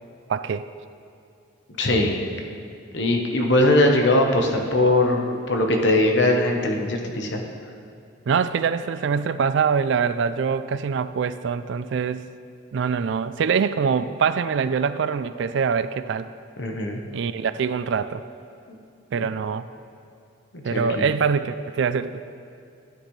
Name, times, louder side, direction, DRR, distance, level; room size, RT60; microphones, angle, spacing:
voice 1, 0.3-0.7 8.3-12.2 12.7-16.3 17.1-18.2 19.1-19.7 20.6-22.3, right 6 dB, 60° right, 13 dB, 0.3 m, -24 dB
voice 2, 1.8-2.2 2.9-7.4 16.6-17.0 19.2-19.3 20.5-21.1, left 1 dB, 55° left, 2 dB, 1.1 m, -21 dB
13.0 x 8.9 x 3.2 m, 2.5 s
head